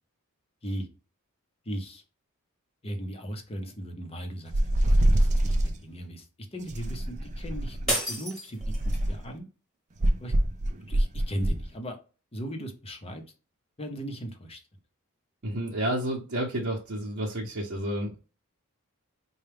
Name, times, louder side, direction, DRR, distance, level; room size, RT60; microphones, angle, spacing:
voice 1, 1.7-2.0 2.8-4.5 4.8-6.3 6.5-9.5 10.2-10.3 10.9-12.0 12.3-13.2 13.8-14.6, equal, 25° left, 5 dB, 0.8 m, -37 dB
sound 1, 4.5-5.8 6.7-8.0 8.6-9.3 10.0-11.6, right 1 dB, 35° right, 0.5 m, -25 dB
sound 2, 7.9-9.1, right 1 dB, ahead, 1.2 m, -31 dB
voice 2, 15.4-18.3, right 1 dB, 50° right, -4 dB, 0.9 m, -30 dB
4.4 x 2.3 x 3.3 m, 0.33 s
head